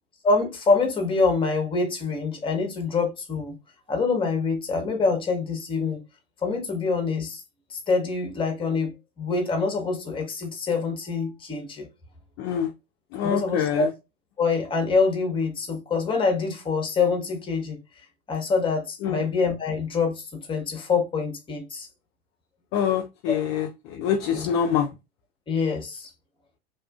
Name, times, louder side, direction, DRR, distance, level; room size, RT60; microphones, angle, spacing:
voice 1, 0.2-3.6 3.9-6.0 6.4-7.4 7.7-8.9 9.2-11.9 13.2-13.9 14.4-17.8 18.3-21.9 24.3-24.5 25.5-26.1, left 4 dB, 15° left, 0.8 m, -25 dB
voice 2, 12.4-12.7 13.1-13.9 19.0-19.2 22.7-24.9, left 8 dB, 40° left, 0.4 m, -25 dB
2.7 x 2.4 x 2.3 m
hypercardioid pair, 90°, 31 cm